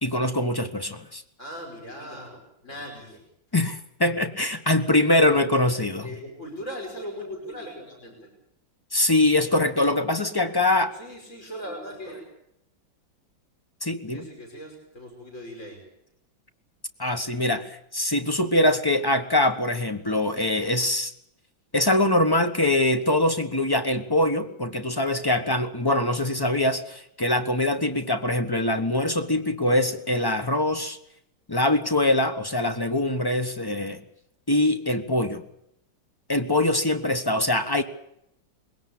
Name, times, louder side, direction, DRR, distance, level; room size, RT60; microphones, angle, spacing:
voice 1, 0.0-1.2 3.5-6.1 8.9-10.9 13.8-14.3 17.0-21.1 21.7-31.0 31.5-34.0 34.5-35.4 36.3-37.8, left 1 dB, 15° left, 9 dB, 0.9 m, -23 dB
voice 2, 1.4-3.2 6.0-8.3 10.9-12.2 14.1-15.8, equal, 35° left, 1 dB, 5.8 m, -39 dB
21.5 x 17.5 x 8.7 m, 0.75 s
omnidirectional pair, 2.2 m